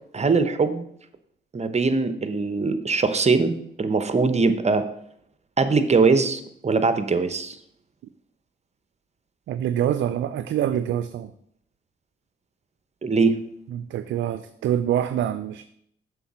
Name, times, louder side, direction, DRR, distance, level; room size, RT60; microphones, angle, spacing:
voice 1, 0.1-0.8 1.5-3.5 3.8-4.8 5.6-7.6 13.0-13.4, right 4 dB, 35° right, 10 dB, 0.8 m, -21 dB
voice 2, 9.5-11.3 13.7-15.7, right 10 dB, 70° right, 11 dB, 0.4 m, -25 dB
7.0 x 3.7 x 6.0 m, 0.71 s
supercardioid pair, 55°, 21 cm